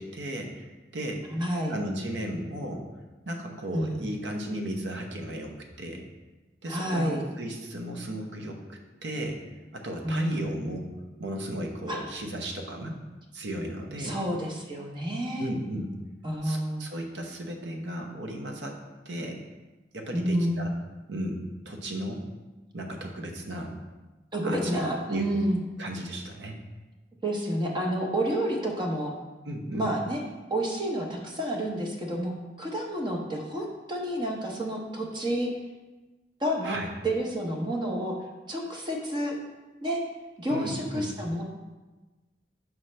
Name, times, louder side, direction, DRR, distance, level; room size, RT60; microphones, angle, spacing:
voice 1, 0.0-1.2 1.7-2.9 3.2-6.0 6.6-9.4 9.7-10.9 11.2-13.0 13.3-14.2 15.4-15.9 16.4-18.8 19.0-19.4 19.9-20.7 21.1-22.2 22.7-23.8 24.4-24.8 25.1-25.3 25.8-26.6 29.4-29.9 36.6-36.9 40.5-41.1, right 1 dB, 85° right, 2 dB, 0.9 m, -35 dB
voice 2, 1.3-1.8 3.7-4.0 6.7-7.2 10.0-10.6 11.9-12.0 14.0-15.5 16.2-16.9 20.1-20.6 24.3-25.6 27.2-29.1 29.7-30.2 30.5-32.3 32.6-35.5 36.4-36.8 37.0-38.2 38.5-39.4 39.8-40.0 40.4-41.4, right 1 dB, 25° right, 0 dB, 0.8 m, -29 dB
6.2 x 5.6 x 3.2 m, 1.2 s
head